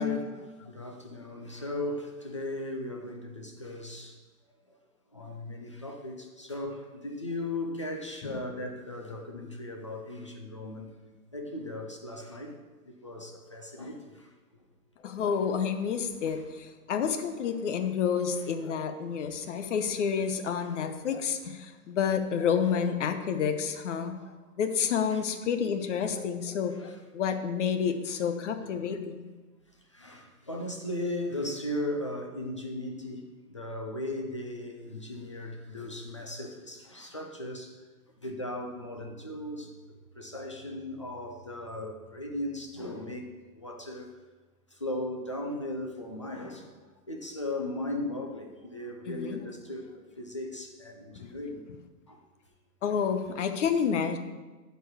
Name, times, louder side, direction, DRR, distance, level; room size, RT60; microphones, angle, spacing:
voice 1, 0.0-4.2 4.6-4.7 5.1-10.9 11.3-12.5 13.0-14.3 16.2-16.4 19.4-19.7 20.6-20.7 21.0-21.1 24.1-24.4 24.9-25.2 26.8-27.0 28.6-28.9 29.9-37.8 38.2-44.1 44.7-46.7 47.1-51.6 52.1-52.2, left 1 dB, 20° left, 0.3 m, -37 dB
voice 2, 15.0-24.2 24.6-29.2 49.1-49.4 52.8-54.2, left 7 dB, 50° left, 1.0 m, -29 dB
12.0 x 4.7 x 4.8 m
hypercardioid pair, 150°, 47 cm